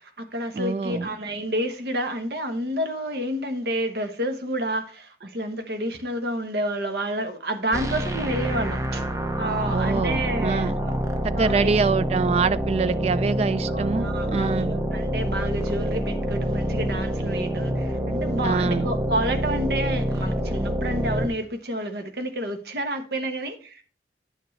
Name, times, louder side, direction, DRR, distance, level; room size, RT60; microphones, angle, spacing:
voice 1, 0.0-9.1 9.4-10.9 11.4-11.7 13.7-23.8, right 1 dB, 60° right, 1.0 m, -29 dB
voice 2, 0.5-1.1 9.7-10.7 11.2-14.8 18.4-18.9, right 4 dB, 35° right, 0.3 m, -25 dB
sound 1, 7.7-21.3, right 1 dB, 15° right, 0.7 m, -27 dB
9.9 x 7.0 x 3.2 m
head